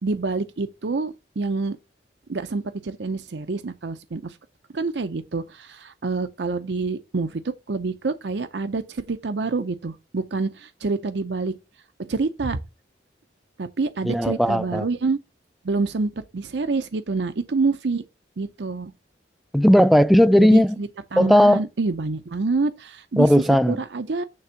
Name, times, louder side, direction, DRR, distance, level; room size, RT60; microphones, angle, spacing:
voice 1, 0.0-1.8 2.3-4.4 4.7-11.5 12.0-12.6 13.6-15.2 15.6-18.0 18.4-18.9 20.4-23.3 23.7-24.2, right 3 dB, 70° right, 0.6 m, -27 dB
voice 2, 14.0-14.9 19.5-20.8 21.2-21.6 23.2-23.8, equal, ahead, 0.4 m, -16 dB
9.5 x 3.5 x 5.7 m
head